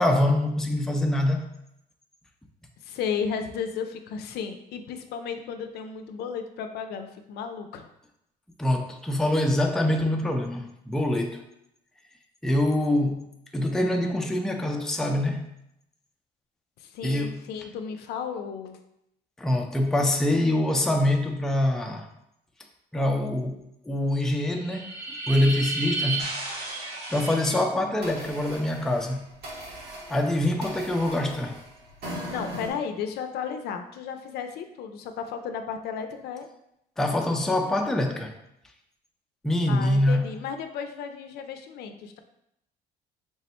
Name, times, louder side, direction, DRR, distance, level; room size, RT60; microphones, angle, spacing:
voice 1, 0.0-1.4 8.6-11.4 12.4-13.3 13.5-15.5 17.0-17.4 19.4-22.1 22.9-25.0 25.3-26.3 27.1-29.2 30.1-31.6 37.0-38.3 39.4-40.3, left 1 dB, 5° left, 3 dB, 0.4 m, -24 dB
voice 2, 2.8-7.9 16.8-18.8 32.3-36.5 39.7-42.2, left 6 dB, 70° left, 7 dB, 0.4 m, -34 dB
sound 1, 24.4-27.6 28.0-32.7, right 2 dB, 75° right, 1.3 m, -35 dB
3.3 x 2.1 x 4.2 m, 0.81 s
cardioid pair, 110°, 17 cm